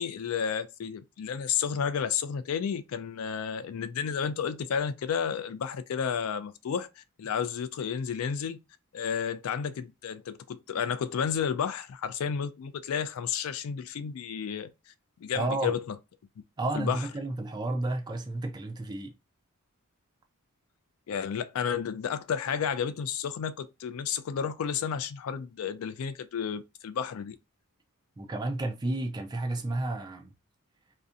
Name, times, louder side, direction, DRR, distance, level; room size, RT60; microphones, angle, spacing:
voice 1, 0.0-8.6 8.9-14.7 15.2-15.8 16.7-17.0 21.1-27.3, left 7 dB, 70° left, 0.3 m, -32 dB
voice 2, 15.3-15.8 16.6-19.1 28.2-30.3, right 2 dB, 20° right, 0.3 m, -31 dB
2.6 x 2.1 x 2.4 m
head